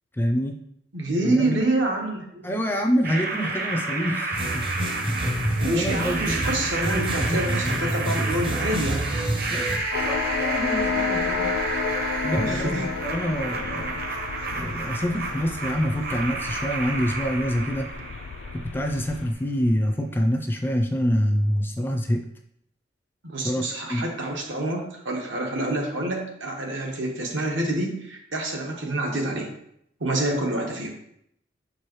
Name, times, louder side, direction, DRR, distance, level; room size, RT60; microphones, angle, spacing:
voice 1, 0.1-0.6 1.2-1.6 2.4-4.7 5.0-6.4 6.8-7.8 9.5-11.5 12.2-14.0 14.5-17.9 18.5-22.2 23.4-23.6 23.9-24.0, equal, 10° left, 3 dB, 0.4 m, -26 dB
voice 2, 0.9-2.6 5.6-9.1 12.4-12.8 14.4-14.5 23.2-29.5 30.0-30.9, right 1 dB, 80° right, 0 dB, 1.3 m, -27 dB
sound 1, 3.0-19.0, right 3 dB, 50° right, 0.9 m, -31 dB
sound 2, 4.3-9.8, right 1 dB, 25° right, 0.6 m, -28 dB
sound 3, 9.9-19.3, left 5 dB, 85° left, 0.3 m, -31 dB
6.8 x 4.7 x 3.1 m, 0.76 s
head